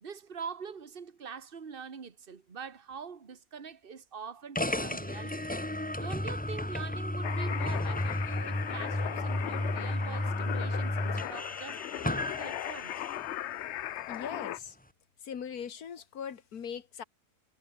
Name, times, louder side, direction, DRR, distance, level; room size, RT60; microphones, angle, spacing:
voice 1, 0.0-5.5 6.0-13.1, right 6 dB, 40° right, 1.7 m, -44 dB
sound 1, 4.5-13.3, left 1 dB, 5° left, 0.9 m, -33 dB
sound 2, 7.2-14.6, left 13 dB, 65° left, 0.7 m, -38 dB
voice 2, 14.1-14.8 15.2-17.0, left 7 dB, 90° left, 1.9 m, -40 dB
omnidirectional pair, 1.5 m